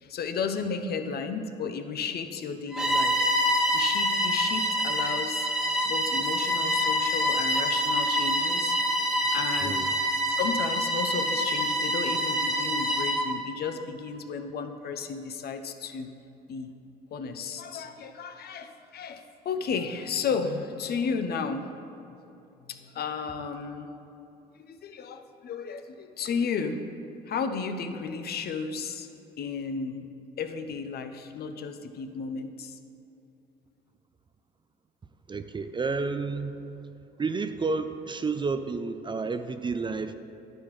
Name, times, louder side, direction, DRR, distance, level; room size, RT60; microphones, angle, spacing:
voice 1, 0.0-3.3 3.7-5.5 5.8-9.9 10.2-16.1 16.5-16.7 17.1-21.8 22.6-23.9 24.5-26.8 27.3-29.1 29.4-30.1 30.4-32.8, left 5 dB, 50° left, 7 dB, 0.7 m, -33 dB
Bowed string instrument, 2.7-13.3, equal, ahead, 1.4 m, -26 dB
voice 2, 9.6-9.9 35.3-36.6 37.2-40.1, right 4 dB, 25° right, 10 dB, 0.4 m, -30 dB
10.0 x 9.6 x 3.2 m, 2.8 s
hypercardioid pair, 65°, 21 cm